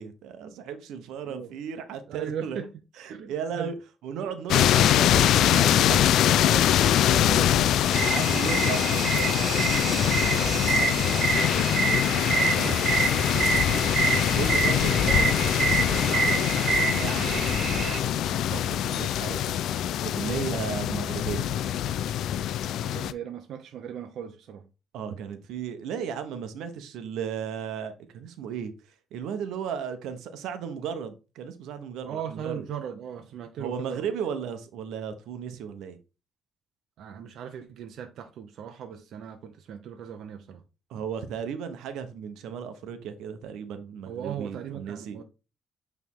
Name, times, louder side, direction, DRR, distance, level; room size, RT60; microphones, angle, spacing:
voice 1, 0.0-2.6 3.0-3.7 4.0-7.1 8.0-11.5 12.2-12.7 13.3-13.4 13.7-18.2 18.5-19.6 20.0-21.5 24.9-28.7 29.1-32.7 33.6-36.0 40.9-45.2, right 7 dB, 90° right, 1.0 m, -36 dB
voice 2, 2.1-2.7 3.1-3.7 4.2-4.3 7.1-7.8 8.3-8.8 12.2-12.8 20.2-20.4 22.8-24.6 32.0-34.1 37.0-40.6 44.1-45.2, right 8 dB, 70° right, 0.8 m, -38 dB
sound 1, 4.5-23.1, left 11 dB, 75° left, 0.4 m, -24 dB
sound 2, 7.9-18.0, right 4 dB, 45° right, 1.0 m, -27 dB
8.5 x 3.5 x 3.7 m
cardioid pair, 130°, 0 cm